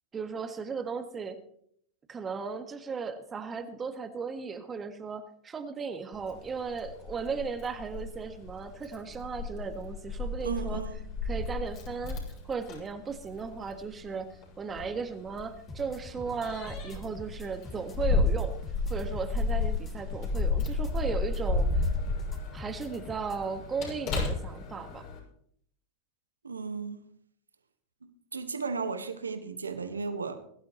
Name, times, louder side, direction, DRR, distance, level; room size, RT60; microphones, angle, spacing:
voice 1, 0.1-1.4 2.1-10.8 11.2-12.2 12.4-18.6 18.9-21.8 22.5-25.1, right 5 dB, 25° right, 7 dB, 1.6 m, -36 dB
Keys jangling, 6.1-25.2, left 3 dB, 50° left, 6.5 m, -33 dB
voice 2, 10.4-11.0 26.4-27.0 28.0-30.4, right 4 dB, 90° right, 7 dB, 1.6 m, -35 dB
sound 1, 15.7-23.4, left 1 dB, 25° left, 2.6 m, -45 dB
22.0 x 12.0 x 3.2 m, 0.66 s
hypercardioid pair, 95°, 0 cm